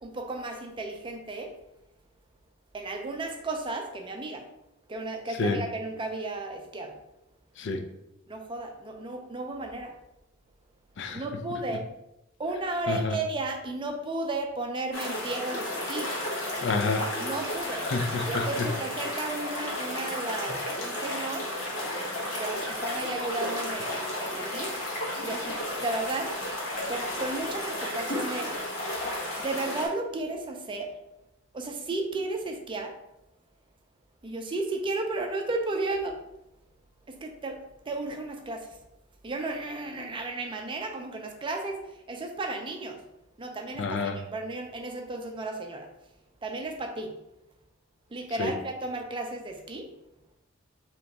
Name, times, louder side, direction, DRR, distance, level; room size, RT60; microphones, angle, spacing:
voice 1, 0.0-1.5 2.7-4.5 4.9-7.0 8.3-10.0 11.1-11.9 12.4-16.1 17.2-17.9 18.2-21.5 22.4-24.8 25.2-26.3 26.9-28.5 29.4-30.9 31.5-32.9 34.2-36.2 37.1-37.6 37.9-38.8 39.2-43.0 43.4-45.9 46.4-47.1 48.1-49.9, right 2 dB, 25° right, 3 dB, 0.4 m, -34 dB
sound 1, 14.9-29.9, left 1 dB, 75° left, 1.2 m, -33 dB
voice 2, 16.6-17.1 17.9-18.7 43.8-44.2 48.4-48.5, left 3 dB, 60° left, 7 dB, 0.5 m, -28 dB
3.4 x 2.9 x 4.0 m, 0.88 s
head